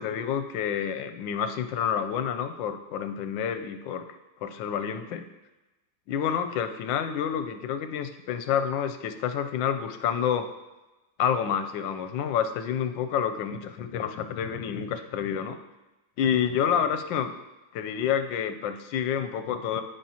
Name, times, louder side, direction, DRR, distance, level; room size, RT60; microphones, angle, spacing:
voice 1, 0.0-4.0 4.4-5.3 6.1-10.5 11.2-15.6 16.2-17.3 17.7-19.8, left 8 dB, 90° left, 9 dB, 1.3 m, -28 dB
14.5 x 5.0 x 2.9 m, 1.0 s
omnidirectional pair, 2.0 m